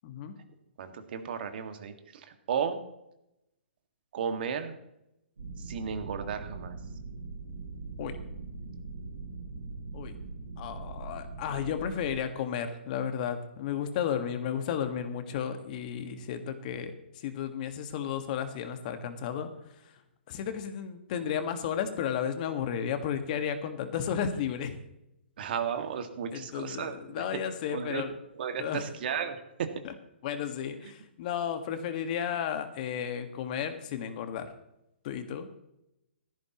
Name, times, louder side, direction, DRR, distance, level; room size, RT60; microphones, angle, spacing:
voice 1, 0.0-0.3 8.0-8.2 9.9-10.1 10.6-19.5 19.8-19.9 20.3-24.8 26.3-28.2 28.6-28.8 29.8-29.9 30.2-34.5 35.0-35.5, left 8 dB, 45° left, 8 dB, 1.6 m, -33 dB
voice 2, 0.8-2.8 4.1-4.7 5.6-6.8 25.4-27.2 27.7-28.0 28.4-29.7, right 7 dB, 55° right, 7 dB, 1.9 m, -34 dB
sound 1, 5.4-12.2, right 3 dB, 85° right, 2.6 m, -41 dB
16.0 x 14.0 x 3.0 m, 0.85 s
hypercardioid pair, 135°, 6 cm